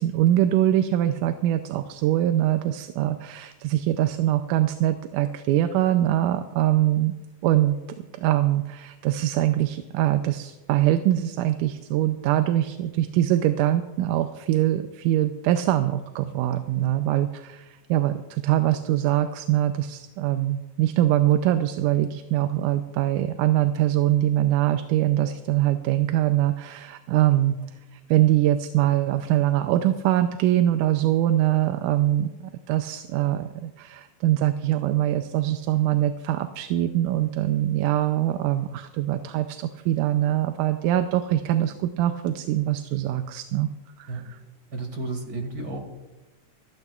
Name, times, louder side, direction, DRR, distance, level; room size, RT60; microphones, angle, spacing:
voice 1, 0.0-7.1 7.4-7.8 8.2-27.6 27.9-43.7 44.0-44.2, right 13 dB, 85° right, 8 dB, 2.1 m, -23 dB
voice 2, 44.7-45.9, right 2 dB, 35° right, 2 dB, 2.7 m, -32 dB
26.0 x 12.0 x 2.4 m, 1.1 s
omnidirectional pair, 3.7 m